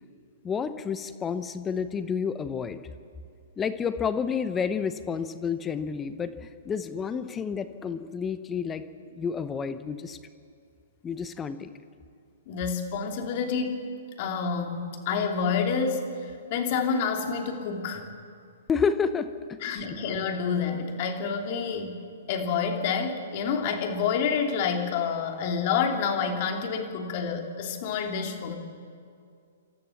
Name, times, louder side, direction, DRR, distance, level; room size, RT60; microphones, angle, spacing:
voice 1, 0.4-2.8 3.6-8.8 9.1-10.2 11.0-11.7 18.7-19.9, left 6 dB, 15° left, 11 dB, 0.9 m, -30 dB
voice 2, 12.5-13.8 14.2-16.2 16.5-18.1 19.6-22.0 22.3-28.6, left 6 dB, 45° left, 4 dB, 2.9 m, -28 dB
27.5 x 13.5 x 7.3 m, 2.3 s
hypercardioid pair, 125°, 0 cm